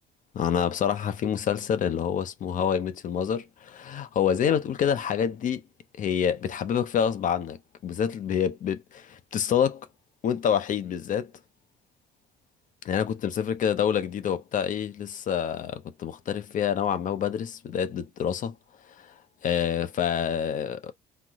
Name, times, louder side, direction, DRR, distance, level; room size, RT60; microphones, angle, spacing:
voice 1, 0.3-5.6 6.0-9.9 10.2-11.3 12.8-18.5 19.4-20.9, left 8 dB, 50° left, 0.6 m, -27 dB
3.9 x 2.0 x 2.9 m
cardioid pair, 110°, 17 cm